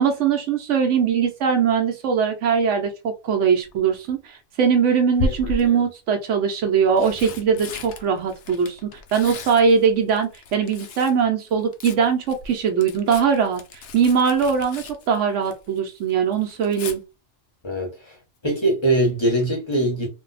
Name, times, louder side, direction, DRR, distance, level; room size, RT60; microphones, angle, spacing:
voice 1, 0.0-17.0, right 6 dB, 80° right, 0.9 m, -21 dB
Tearing, 3.7-4.1 5.2-5.9 6.7-11.2 11.5-15.8 16.1-17.0 18.8-19.1 19.4-19.5, left 3 dB, 75° left, 0.9 m, -35 dB
voice 2, 17.6-18.1 18.4-20.1, right 1 dB, 25° left, 1.0 m, -22 dB
2.6 x 2.2 x 3.9 m
omnidirectional pair, 1.2 m